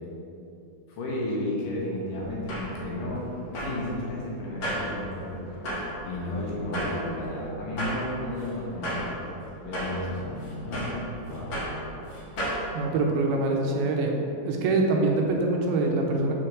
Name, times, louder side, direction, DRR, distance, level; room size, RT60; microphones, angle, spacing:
voice 1, 0.9-3.3 3.6-5.4 6.1-9.3 9.6-11.6, left 1 dB, 70° left, -4 dB, 2.4 m, -33 dB
Footsteps Metal, 2.2-12.6, equal, 50° left, 1.6 m, -35 dB
voice 2, 12.7-14.2 14.4-16.3, right 3 dB, 80° right, 1 dB, 2.6 m, -24 dB
6.8 x 4.5 x 6.2 m, 2.9 s
omnidirectional pair, 4.3 m